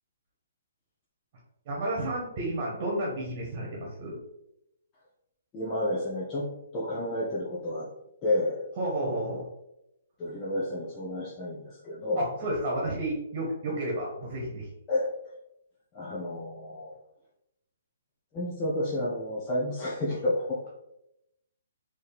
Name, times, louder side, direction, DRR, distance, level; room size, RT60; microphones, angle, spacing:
voice 1, 1.6-4.2 8.8-9.5 12.1-14.7, right 1 dB, 40° right, -3 dB, 1.4 m, -31 dB
voice 2, 5.5-6.5 6.7-7.9 8.2-8.6 10.2-12.3 14.9-15.1 15.9-16.9 18.3-20.7, left 1 dB, 25° left, -7 dB, 1.0 m, -30 dB
4.3 x 3.1 x 3.5 m, 0.85 s
hypercardioid pair, 145°, 0 cm